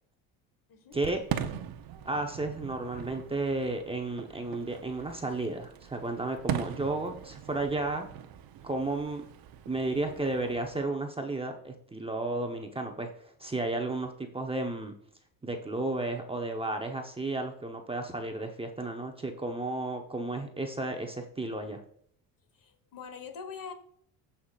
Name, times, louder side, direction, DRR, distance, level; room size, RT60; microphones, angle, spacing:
voice 1, 0.9-1.2 2.0-8.1 8.6-9.2 9.7-14.9 15.4-21.8, right 2 dB, 15° right, 3 dB, 0.9 m, -33 dB
Fireworks, 0.9-10.8, right 10 dB, 55° right, 0.9 m, -40 dB
voice 2, 22.6-23.7, left 6 dB, 50° left, 9 dB, 1.4 m, -43 dB
15.5 x 5.7 x 2.4 m, 0.63 s
cardioid pair, 100°, 43 cm